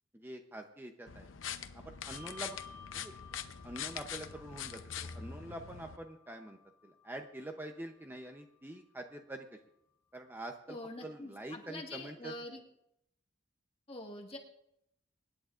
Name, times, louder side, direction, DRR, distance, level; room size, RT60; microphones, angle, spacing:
voice 1, 0.1-1.3 1.7-2.6 2.9-3.1 3.6-9.6 10.1-12.3, right 1 dB, 10° right, 4 dB, 0.7 m, -46 dB
sound 1, 1.1-6.0, left 8 dB, 85° left, 0.7 m, -43 dB
Bell, 2.1-8.9, left 6 dB, 65° right, 4.1 m, -56 dB
voice 2, 10.7-12.6 13.9-14.4, left 2 dB, 30° left, 1 dB, 1.7 m, -45 dB
25.0 x 10.5 x 2.5 m, 0.80 s
head